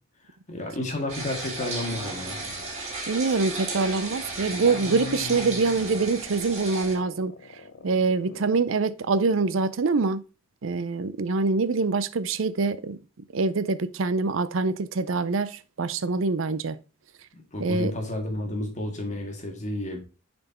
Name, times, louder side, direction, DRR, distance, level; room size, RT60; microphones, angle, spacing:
voice 1, 0.5-2.4 17.5-20.0, left 1 dB, 40° left, 1.9 m, -31 dB
sound 1, 1.1-7.0, right 2 dB, 35° right, 2.3 m, -34 dB
sound 2, 1.8-2.9 4.0-8.5, left 4 dB, 70° left, 0.6 m, -42 dB
voice 2, 3.1-7.3 7.8-10.2 10.6-13.0 13.3-16.8 17.6-17.9, right 4 dB, 75° right, 0.5 m, -25 dB
6.6 x 4.4 x 4.3 m
head